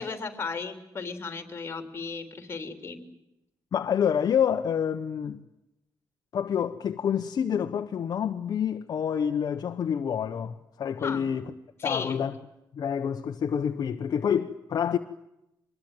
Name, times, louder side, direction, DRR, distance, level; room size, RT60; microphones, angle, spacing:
voice 1, 0.0-3.0 11.0-11.2 11.8-12.2, left 4 dB, 30° left, 3.5 m, -35 dB
voice 2, 3.7-5.4 6.3-11.4 11.8-12.3 12.7-15.0, left 8 dB, 55° left, 1.1 m, -27 dB
25.5 x 21.5 x 9.1 m
wide cardioid pair, 155°, 8 cm